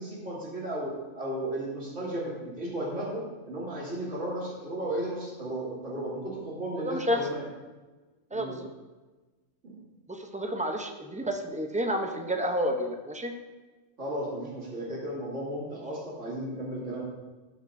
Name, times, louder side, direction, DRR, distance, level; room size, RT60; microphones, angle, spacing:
voice 1, 0.0-7.4 8.3-8.6 9.6-9.8 14.0-17.0, right 1 dB, 70° right, -6 dB, 2.9 m, -34 dB
voice 2, 6.7-7.3 8.3-8.7 10.1-13.3, equal, 10° right, 4 dB, 0.4 m, -30 dB
13.0 x 6.6 x 2.6 m, 1.2 s
omnidirectional pair, 1.3 m